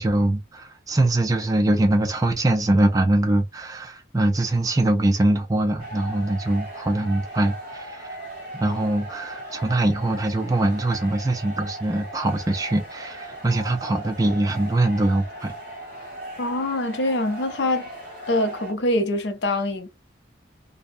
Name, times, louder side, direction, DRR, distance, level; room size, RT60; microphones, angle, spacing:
voice 1, 0.0-8.1 8.5-15.5, right 1 dB, 20° right, 0.3 m, -22 dB
sound 1, 5.8-18.7, right 1 dB, 45° right, 1.1 m, -38 dB
voice 2, 16.4-17.9 18.3-19.9, left 1 dB, 65° left, 0.5 m, -24 dB
2.5 x 2.1 x 2.5 m
head